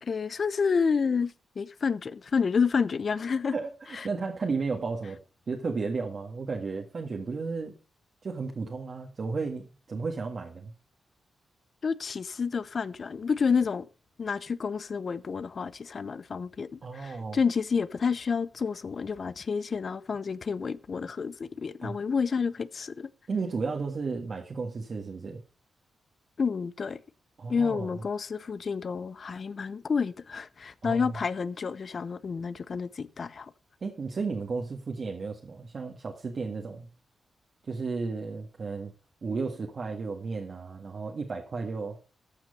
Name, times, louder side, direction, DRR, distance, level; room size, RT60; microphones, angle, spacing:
voice 1, 0.0-3.5 4.0-4.1 11.8-13.9 14.2-23.1 26.4-27.0 27.5-33.5, left 5 dB, 55° left, 0.7 m, -29 dB
voice 2, 3.5-5.2 5.5-7.8 8.2-10.7 16.8-17.4 21.8-22.0 23.3-25.4 27.4-27.9 30.8-31.2 33.8-36.9 37.7-38.9 39.2-42.0, right 4 dB, 55° right, 1.7 m, -33 dB
13.5 x 6.0 x 5.4 m
cardioid pair, 65°, 0 cm